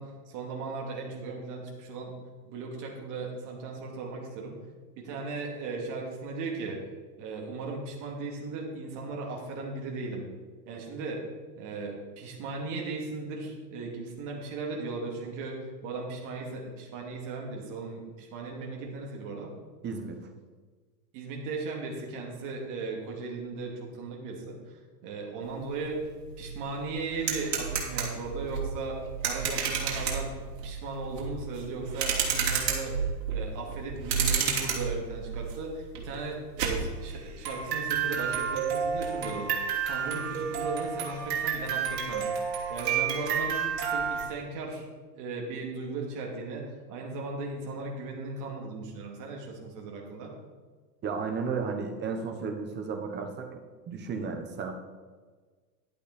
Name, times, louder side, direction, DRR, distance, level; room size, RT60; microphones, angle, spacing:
voice 1, 0.0-2.2 2.5-4.5 5.0-6.8 7.2-10.3 10.7-11.2 11.5-19.5 21.1-26.0 26.4-42.2 42.7-43.6 43.9-44.8 45.2-50.3, right 3 dB, 40° right, 0 dB, 2.5 m, -37 dB
voice 2, 19.8-20.2 51.0-53.6 53.9-54.7, right 5 dB, 20° right, 5 dB, 1.0 m, -33 dB
sound 1, 25.8-25.9 26.2-44.3, right 6 dB, 75° right, 3.0 m, -31 dB
11.5 x 8.3 x 4.3 m, 1.5 s
supercardioid pair, 145°, 49 cm